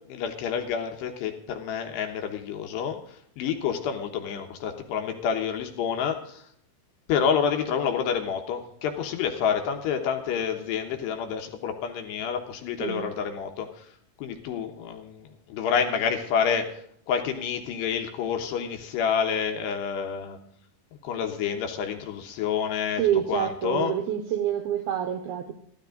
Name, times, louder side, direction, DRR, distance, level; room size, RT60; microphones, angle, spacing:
voice 1, 0.1-6.4 7.1-13.9 14.2-20.4 21.0-23.0 23.3-23.9, left 7 dB, 70° left, 5 dB, 3.0 m, -28 dB
voice 2, 23.0-25.5, right 10 dB, 80° right, 7 dB, 2.3 m, -27 dB
14.5 x 13.0 x 3.8 m, 0.65 s
omnidirectional pair, 5.5 m